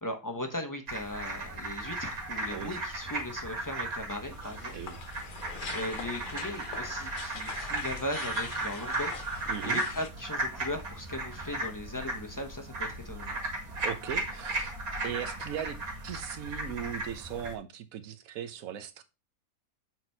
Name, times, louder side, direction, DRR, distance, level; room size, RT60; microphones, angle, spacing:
voice 1, 0.0-4.8 5.7-9.2 9.6-13.4, left 1 dB, 15° left, 0.9 m, -38 dB
sound 1, 0.9-17.6, right 2 dB, 90° right, 2.5 m, -36 dB
voice 2, 2.5-2.8 4.7-5.0 9.5-9.8 13.7-14.8 15.0-15.8 16.0-19.0, right 9 dB, 75° right, 1.2 m, -38 dB
sound 2, 4.2-10.1, left 6 dB, 45° left, 0.7 m, -44 dB
7.9 x 4.2 x 4.5 m
omnidirectional pair, 1.5 m